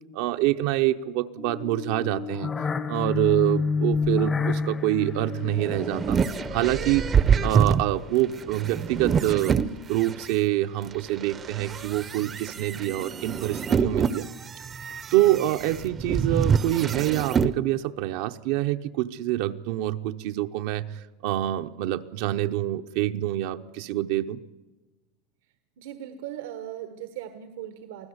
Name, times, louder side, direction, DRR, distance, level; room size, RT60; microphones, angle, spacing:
voice 1, 0.1-2.5 2.9-6.2 6.5-7.1 7.4-9.6 9.9-14.3 15.1-24.4, right 15 dB, 65° right, 7 dB, 0.7 m, -26 dB
sound 1, 1.4-7.8, left 5 dB, 20° left, 0.8 m, -29 dB
sound 2, 5.3-10.3 10.9-17.5, right 6 dB, 20° right, 0.6 m, -26 dB
voice 2, 25.8-28.1, right 11 dB, 85° right, 9 dB, 1.4 m, -38 dB
24.5 x 16.0 x 8.0 m, 1.1 s
supercardioid pair, 160°, 0 cm